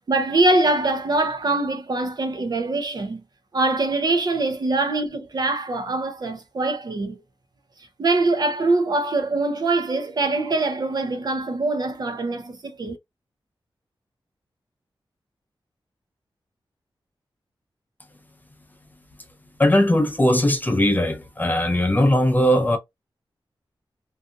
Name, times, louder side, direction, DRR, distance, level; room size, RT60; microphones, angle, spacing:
voice 1, 0.1-3.2 3.5-7.2 8.0-13.0, right 2 dB, 50° right, 0.6 m, -23 dB
voice 2, 19.6-22.8, left 1 dB, 20° left, 0.6 m, -19 dB
2.6 x 2.4 x 2.5 m
wide cardioid pair, 120°, 9 cm